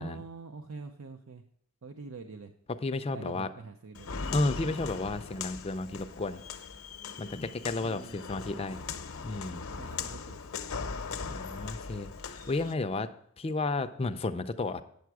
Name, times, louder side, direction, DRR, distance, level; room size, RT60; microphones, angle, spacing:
voice 1, 0.0-1.4 1.8-2.5 3.1-4.1 7.8-8.6 9.8-10.4, right 4 dB, 80° right, 6 dB, 0.6 m, -45 dB
voice 2, 2.8-3.5 4.3-6.4 7.2-8.8 9.2-9.6 11.3-13.1 13.4-14.8, left 3 dB, 25° left, 10 dB, 0.4 m, -32 dB
Walk footsteps, 3.9-12.7, left 5 dB, 75° left, 0.7 m, -39 dB
9.3 x 6.8 x 4.7 m, 0.68 s
head